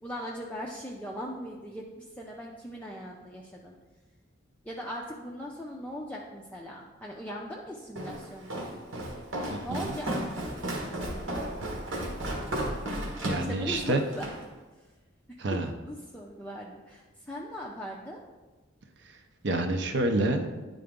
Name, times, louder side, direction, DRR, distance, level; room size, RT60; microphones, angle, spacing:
voice 1, 0.0-3.7 4.6-8.7 9.6-10.3 13.4-14.3 15.3-18.2, equal, 5° left, -2 dB, 0.4 m, -39 dB
Walk footsteps, 8.0-14.4, right 1 dB, 90° right, 1.3 m, -34 dB
voice 2, 9.5-9.9 13.2-14.0 15.4-15.7 19.0-19.2 19.4-20.5, right 2 dB, 60° right, 5 dB, 0.6 m, -28 dB
9.8 x 3.8 x 3.6 m, 1.2 s
head